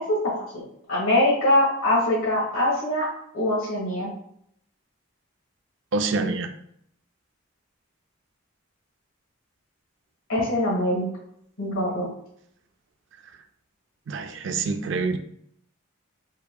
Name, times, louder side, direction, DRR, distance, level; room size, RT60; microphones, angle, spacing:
voice 1, 0.9-3.1 3.3-4.1 10.3-11.0 11.6-12.1, left 1 dB, 75° left, -4 dB, 1.4 m, -23 dB
voice 2, 5.9-6.5 14.1-15.2, right 3 dB, 60° right, 7 dB, 0.4 m, -26 dB
4.6 x 2.8 x 2.2 m, 0.70 s
head